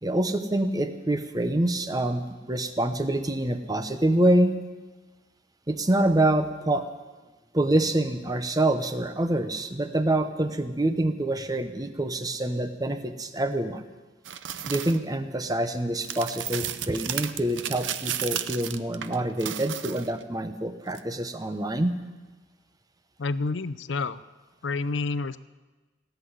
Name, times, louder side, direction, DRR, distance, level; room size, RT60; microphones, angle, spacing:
voice 1, 0.0-4.5 5.7-6.9 7.5-13.8 14.7-21.9, right 1 dB, 20° right, 9 dB, 0.9 m, -26 dB
sound 1, 14.2-15.0 16.0-20.2 20.9-21.0, right 10 dB, 75° right, 0.7 m, -33 dB
voice 2, 23.2-24.2 24.6-25.4, left 3 dB, 70° left, 15 dB, 0.6 m, -29 dB
17.5 x 8.2 x 9.7 m, 1.3 s
head